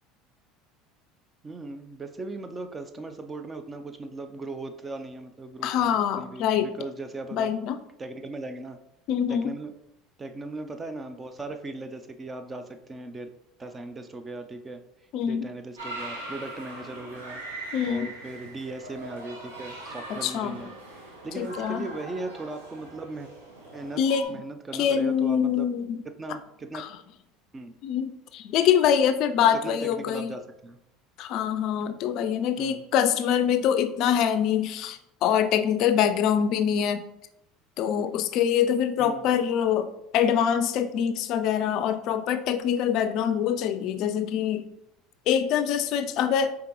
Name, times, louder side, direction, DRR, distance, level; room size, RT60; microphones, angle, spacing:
voice 1, 1.4-7.5 8.0-8.8 9.3-9.7 10.2-13.3 13.6-14.8 15.3-17.4 17.9-20.7 21.2-23.3 23.7-24.0 24.3-25.7 26.2-26.8 27.5-27.7 29.5-30.8 32.6-32.8 39.0-39.3, right 2 dB, 25° right, 8 dB, 0.5 m, -38 dB
voice 2, 5.6-6.7 7.3-7.8 9.1-9.5 15.1-15.5 17.7-18.1 20.1-20.7 21.4-21.9 24.0-24.3 24.7-26.0 26.7-26.9 27.8-30.3 31.2-37.0 37.8-44.6 45.3-46.6, left 8 dB, 60° left, 11 dB, 0.3 m, -24 dB
sound 1, 15.8-24.2, right 2 dB, 90° right, 1.1 m, -41 dB
5.0 x 3.5 x 3.0 m, 0.83 s
hypercardioid pair, 75°, 0 cm